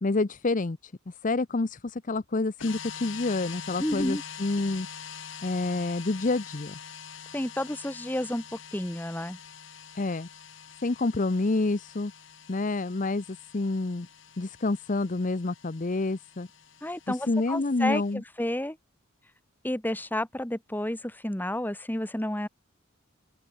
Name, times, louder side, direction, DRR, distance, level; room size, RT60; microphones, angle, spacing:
voice 1, 0.0-4.9 5.4-6.8 9.9-10.3 10.8-12.1 12.5-14.1 14.4-16.5 17.1-18.2, left 2 dB, 40° left, 0.7 m, -28 dB
sound 1, 2.6-18.1, left 8 dB, 65° left, 1.7 m, -45 dB
voice 2, 3.8-4.2 7.3-8.4 8.7-9.4 16.8-18.8 19.6-22.5, left 1 dB, 10° left, 1.4 m, -31 dB
open air
head